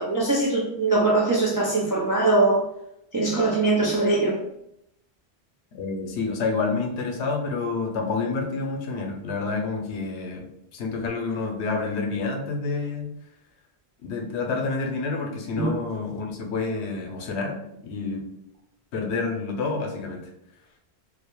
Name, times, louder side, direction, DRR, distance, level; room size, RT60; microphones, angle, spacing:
voice 1, 0.0-2.6 3.1-4.4 15.6-15.7, right 2 dB, 35° right, -5 dB, 0.3 m, -22 dB
voice 2, 5.8-10.5 10.7-13.1 14.0-18.2 18.9-20.3, left 4 dB, 90° left, 2 dB, 0.9 m, -28 dB
2.4 x 2.1 x 2.9 m, 0.76 s
omnidirectional pair, 1.1 m